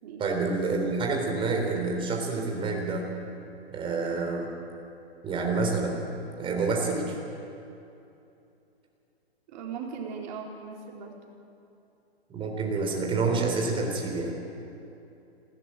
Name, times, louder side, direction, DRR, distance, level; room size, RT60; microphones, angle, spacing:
voice 1, 0.2-3.1 3.7-4.5 5.2-6.0 6.4-7.2 12.3-14.3, right 3 dB, 15° right, 1 dB, 3.8 m, -28 dB
voice 2, 9.5-11.2, right 6 dB, 45° right, 0 dB, 4.0 m, -38 dB
20.0 x 17.5 x 9.1 m, 2.8 s
hypercardioid pair, 135°, 32 cm